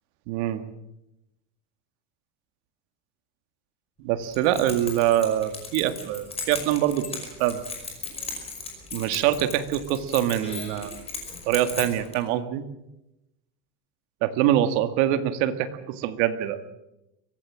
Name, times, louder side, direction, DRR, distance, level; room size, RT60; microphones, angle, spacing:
voice 1, 0.3-0.6 4.0-7.6 8.9-10.9 11.5-12.6 14.2-16.6, right 12 dB, 65° right, 9 dB, 2.1 m, -24 dB
Keys jangling, 4.2-12.2, left 4 dB, 15° left, 5.4 m, -37 dB
24.5 x 17.0 x 7.5 m, 0.90 s
supercardioid pair, 155°, 37 cm